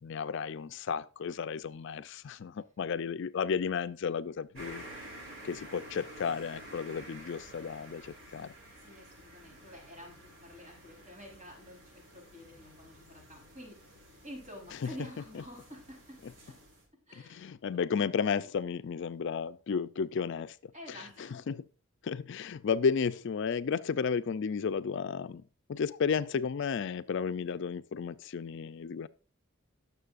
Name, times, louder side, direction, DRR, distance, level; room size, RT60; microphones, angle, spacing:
voice 1, 0.0-4.8 5.4-8.5 14.8-14.9 17.1-21.6 22.0-25.4 25.7-29.1, left 6 dB, 60° left, 0.4 m, -33 dB
sound 1, 4.6-16.9, right 1 dB, 65° right, 4.4 m, -51 dB
voice 2, 8.8-16.5 17.1-17.5 20.7-21.4, equal, 35° right, 4.0 m, -49 dB
18.0 x 6.7 x 2.5 m
head